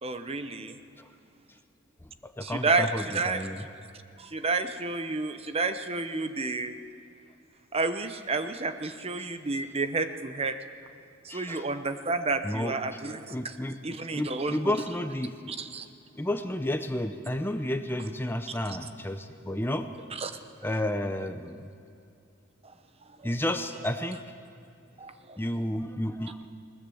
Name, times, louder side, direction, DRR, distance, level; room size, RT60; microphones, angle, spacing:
voice 1, 0.0-0.7 2.4-3.5 4.2-6.8 7.7-10.6 11.2-13.5 13.8-14.8 15.5-15.9 18.7-18.8 20.1-20.3 25.0-25.4, right 3 dB, 30° right, 9 dB, 0.9 m, -30 dB
voice 2, 2.2-3.6 9.2-9.3 11.3-11.7 12.4-12.8 13.3-15.3 16.1-19.9 20.6-21.7 23.2-24.2 25.4-26.5, left 1 dB, 10° left, 8 dB, 0.7 m, -31 dB
21.0 x 19.5 x 7.8 m, 2.5 s
head